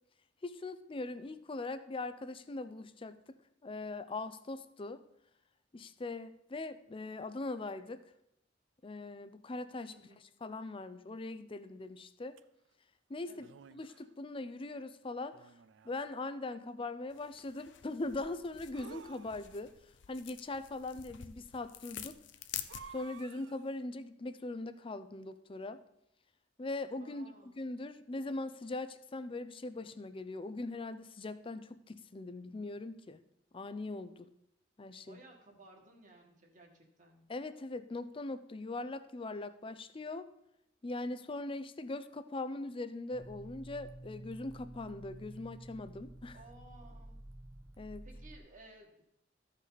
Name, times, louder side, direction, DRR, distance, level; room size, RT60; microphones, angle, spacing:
voice 1, 0.4-3.2 3.6-5.0 5.7-8.0 8.8-9.9 10.4-12.4 13.1-13.5 13.7-15.4 15.8-19.7 20.1-22.2 22.9-25.8 26.6-33.2 33.5-34.3 34.8-35.2 37.3-40.3 40.8-46.4 47.8-48.1, left 2 dB, 30° left, 13 dB, 0.5 m, -41 dB
voice 2, 9.9-10.3 13.3-13.5 27.0-27.7 35.0-37.2 46.3-47.2 48.0-49.0, right 2 dB, 45° right, 1 dB, 1.7 m, -58 dB
sound 1, 12.4-12.5 13.4-14.1 15.3-16.1 18.7-19.8 22.7-23.7, right 6 dB, 75° right, 0.4 m, -53 dB
sound 2, 17.1-23.2, left 10 dB, 75° left, 0.6 m, -48 dB
sound 3, 43.1-48.4, right 1 dB, 15° right, 0.6 m, -50 dB
14.0 x 5.3 x 4.1 m, 0.80 s
head